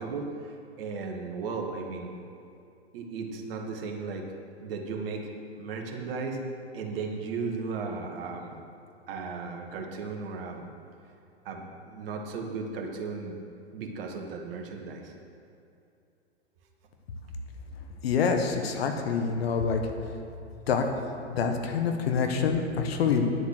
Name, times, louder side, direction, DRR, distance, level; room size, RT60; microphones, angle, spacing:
voice 1, 0.0-2.1 2.9-4.3 4.6-5.3 5.6-6.4 6.7-8.5 9.1-10.7 11.5-13.4 13.7-15.1 18.6-18.9, right 4 dB, 55° right, 2 dB, 2.0 m, -35 dB
voice 2, 18.0-19.8 20.7-20.8 21.3-23.2, left 6 dB, 65° left, 5 dB, 1.5 m, -26 dB
10.5 x 7.8 x 6.7 m, 2.6 s
hypercardioid pair, 110°, 33 cm